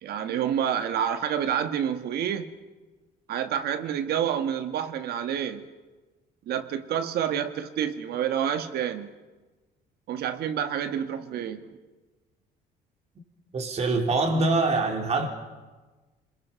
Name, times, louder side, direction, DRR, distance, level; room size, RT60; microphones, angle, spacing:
voice 1, 0.0-2.6 3.3-5.6 6.5-9.1 10.1-11.6, right 9 dB, 70° right, 1.8 m, -28 dB
voice 2, 13.5-15.3, right 3 dB, 40° right, 3.4 m, -24 dB
27.0 x 21.5 x 5.8 m
cardioid pair, 110°, 17 cm